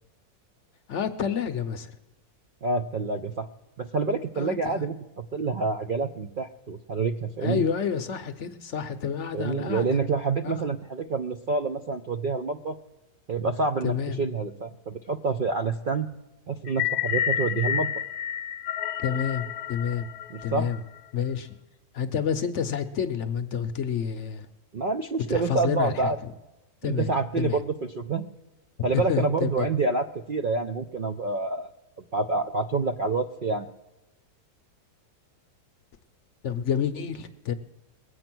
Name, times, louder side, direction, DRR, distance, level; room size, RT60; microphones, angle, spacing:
voice 1, 0.9-2.0 4.4-4.8 7.4-10.0 10.4-10.7 13.8-14.2 19.0-20.1 20.4-20.8 21.1-21.5 21.9-24.5 25.3-26.1 26.8-27.1 27.4-27.6 28.9-29.7 36.4-37.5, left 7 dB, 60° left, 10 dB, 0.9 m, -29 dB
voice 2, 2.6-3.5 3.8-7.6 9.3-12.8 13.3-16.1 16.5-17.9 20.3-20.7 24.7-26.2 27.0-28.3 28.8-31.7 32.0-33.7, right 4 dB, 60° right, 6 dB, 0.5 m, -27 dB
sound 1, 16.7-21.0, left 10 dB, 80° left, 1.2 m, -30 dB
21.0 x 8.0 x 6.0 m, 1.0 s
omnidirectional pair, 1.6 m